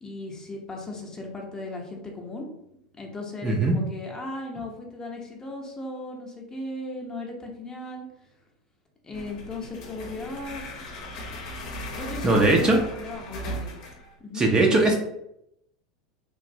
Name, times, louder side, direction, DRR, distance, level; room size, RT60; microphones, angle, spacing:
voice 1, 0.0-2.5 3.0-8.1 9.0-10.6 12.0-13.7 14.2-14.5, left 2 dB, 20° left, 0 dB, 0.7 m, -37 dB
voice 2, 3.4-3.8 12.2-12.8 14.3-14.9, right 2 dB, 20° right, 0 dB, 0.5 m, -19 dB
sound 1, 9.1-14.1, equal, 65° left, 0.7 m, -37 dB
3.1 x 2.5 x 2.6 m, 0.81 s
hypercardioid pair, 105°, 4 cm